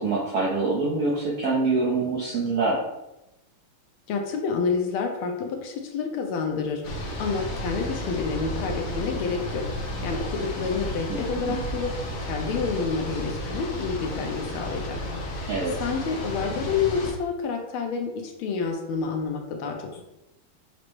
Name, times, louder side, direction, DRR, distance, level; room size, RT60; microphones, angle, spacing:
voice 1, 0.0-2.9 11.1-11.6 15.5-15.9, right 3 dB, 70° right, -5 dB, 0.9 m, -25 dB
voice 2, 4.1-9.6 10.0-11.9 12.2-15.0 15.8-20.0, left 5 dB, 75° left, 3 dB, 1.5 m, -29 dB
sound 1, 6.8-17.1, equal, 60° left, 0.9 m, -33 dB
5.1 x 2.1 x 4.5 m, 0.94 s
omnidirectional pair, 2.4 m